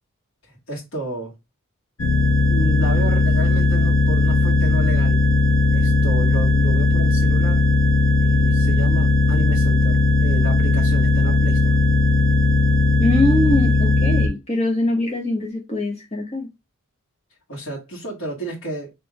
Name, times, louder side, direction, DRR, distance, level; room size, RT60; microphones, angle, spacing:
voice 1, 0.5-1.3 2.5-5.3 5.7-7.6 8.2-11.8 17.5-18.9, right 1 dB, 65° left, 2.0 m, -32 dB
sound 1, 2.0-14.3, left 2 dB, 80° left, 0.9 m, -17 dB
voice 2, 13.0-16.5, left 1 dB, 30° left, 1.0 m, -22 dB
3.5 x 3.3 x 3.6 m
head